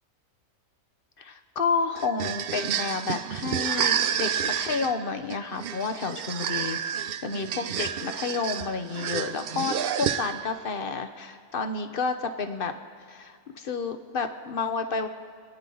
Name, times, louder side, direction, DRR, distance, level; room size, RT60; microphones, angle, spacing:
voice 1, 1.2-12.7 13.1-15.1, left 4 dB, 45° left, 7 dB, 0.9 m, -30 dB
sound 1, 2.0-10.6, right 9 dB, 70° right, 0.5 m, -30 dB
28.0 x 10.0 x 3.9 m, 2.2 s
omnidirectional pair, 1.5 m